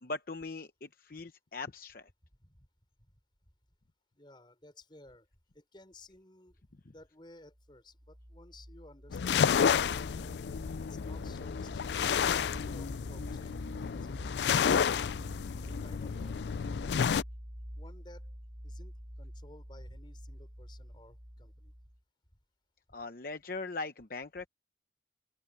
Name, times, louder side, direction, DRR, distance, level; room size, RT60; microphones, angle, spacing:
voice 1, 0.0-2.1 6.9-7.0 22.9-24.5, left 3 dB, 55° left, 0.8 m, -40 dB
voice 2, 4.2-5.3 5.5-6.6 6.8-10.4 10.8-12.2 12.5-15.1 15.7-16.6 17.7-18.3 18.6-21.7, left 1 dB, 25° left, 5.4 m, -56 dB
sound 1, 7.5-22.0, equal, 35° right, 3.9 m, -47 dB
sound 2, 9.1-17.2, left 7 dB, 75° left, 0.4 m, -31 dB
open air
head